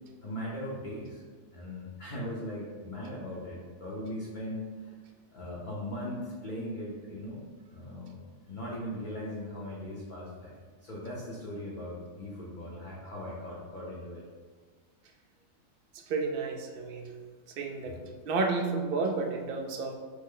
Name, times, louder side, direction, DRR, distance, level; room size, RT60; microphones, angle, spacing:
voice 1, 0.2-1.2 1.5-4.9 5.3-7.4 7.7-8.2 8.4-10.5 10.8-14.2 17.9-18.0, left 1 dB, 45° left, -6 dB, 0.7 m, -39 dB
voice 2, 15.9-17.1 17.6-18.0 18.2-19.9, right 3 dB, 65° right, 3 dB, 0.5 m, -31 dB
6.2 x 2.1 x 3.7 m, 1.5 s
omnidirectional pair, 1.4 m